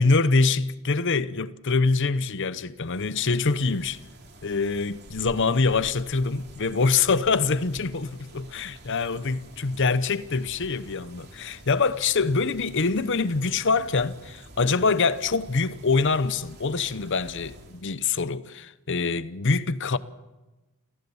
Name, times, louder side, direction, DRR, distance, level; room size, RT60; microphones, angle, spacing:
voice 1, 0.0-4.0 4.4-20.0, left 4 dB, 60° left, 0.9 m, -24 dB
sound 1, 2.8-17.9, right 1 dB, 50° right, 3.1 m, -48 dB
27.0 x 16.0 x 7.2 m
head